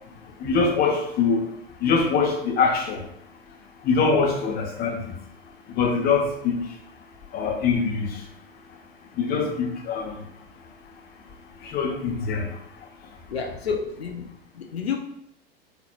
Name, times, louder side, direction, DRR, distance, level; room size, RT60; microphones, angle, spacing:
voice 1, 0.4-1.5 1.8-3.0 3.8-5.1 5.7-6.5 7.3-8.2 9.2-10.1 11.6-12.6, left 5 dB, 30° left, 2 dB, 0.9 m, -23 dB
voice 2, 13.3-14.3 14.5-15.0, left 6 dB, 85° left, 3 dB, 0.7 m, -29 dB
4.6 x 4.0 x 2.4 m, 0.77 s
hypercardioid pair, 95°, 30 cm